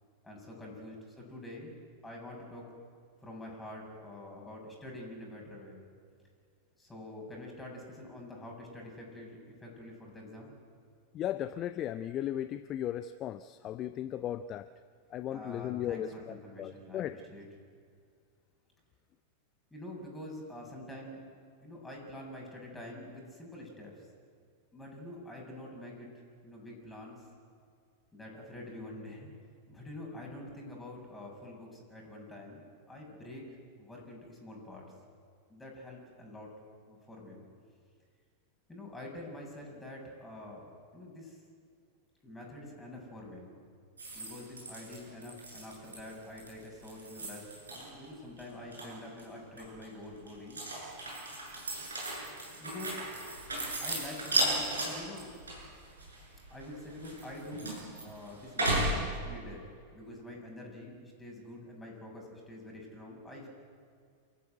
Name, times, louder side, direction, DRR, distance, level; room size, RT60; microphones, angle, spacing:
voice 1, 0.2-1.7 2.0-2.7 3.2-5.8 6.8-10.6 15.3-17.4 19.7-21.2 21.6-24.1 24.7-26.1 26.4-27.3 28.1-29.3 29.7-34.8 35.5-36.5 36.9-37.5 38.7-41.4 42.2-43.5 44.1-50.6 52.6-53.0 53.8-55.3 56.5-59.6 59.9-63.5, left 1 dB, 10° left, -1 dB, 7.5 m, -46 dB
voice 2, 11.1-14.7 15.1-17.2, left 11 dB, 35° left, 12 dB, 0.6 m, -36 dB
sound 1, 44.0-48.1 48.4-49.2 49.6-58.9, right 1 dB, 75° right, 7.5 m, -36 dB
28.0 x 14.5 x 8.1 m, 2.1 s
figure-of-eight pair, 90°, 0 cm